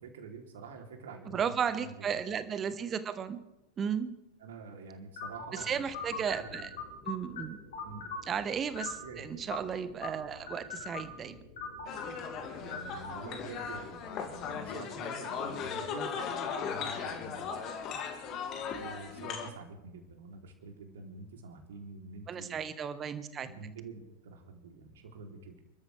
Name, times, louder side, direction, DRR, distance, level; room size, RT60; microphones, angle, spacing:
voice 1, 0.0-2.1 4.4-5.9 6.4-6.7 7.8-8.0 9.0-9.3 12.6-17.6 18.8-22.6 23.4-25.6, right 4 dB, 60° right, 2 dB, 3.3 m, -47 dB
voice 2, 1.3-3.4 3.8-4.1 5.5-6.7 7.1-7.6 8.3-11.3 22.3-23.5, right 7 dB, 25° right, 11 dB, 1.3 m, -34 dB
sound 1, 5.2-14.7, left 4 dB, 60° left, 4.9 m, -44 dB
sound 2, 11.9-19.5, left 6 dB, 35° left, 2.4 m, -37 dB
30.0 x 13.0 x 3.4 m, 0.92 s
figure-of-eight pair, 90°, 0 cm